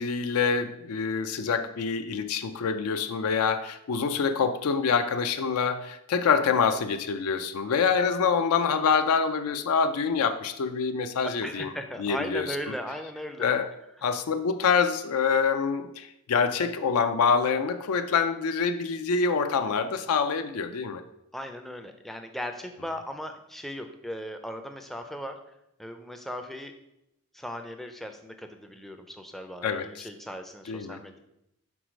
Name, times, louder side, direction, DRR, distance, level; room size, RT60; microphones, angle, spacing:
voice 1, 0.0-11.7 12.0-12.5 13.4-13.7 14.0-21.0 29.6-30.1 30.7-31.0, left 5 dB, 80° left, 9 dB, 0.4 m, -26 dB
voice 2, 11.4-13.5 21.3-25.4 25.8-26.7 27.3-31.2, equal, ahead, 5 dB, 0.4 m, -37 dB
4.7 x 4.0 x 5.0 m, 0.84 s
head